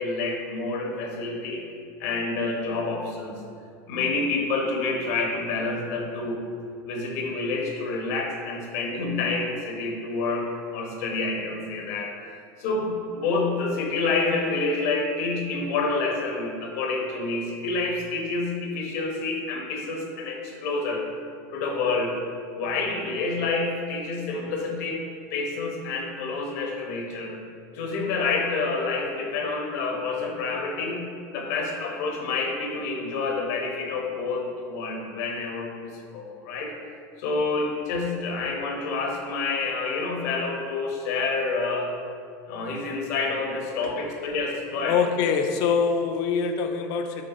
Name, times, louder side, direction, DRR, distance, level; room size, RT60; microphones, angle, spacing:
voice 1, 0.0-1.6 2.0-3.4 3.9-6.4 6.9-21.0 21.5-22.2 22.5-25.0 25.3-27.4 27.7-31.0 31.3-36.7 37.2-41.9 42.5-45.0, left 3 dB, 70° left, 1 dB, 1.1 m, -28 dB
voice 2, 44.9-47.3, left 6 dB, 50° left, 6 dB, 0.5 m, -24 dB
6.4 x 3.5 x 4.2 m, 2.3 s
supercardioid pair, 155°, 9 cm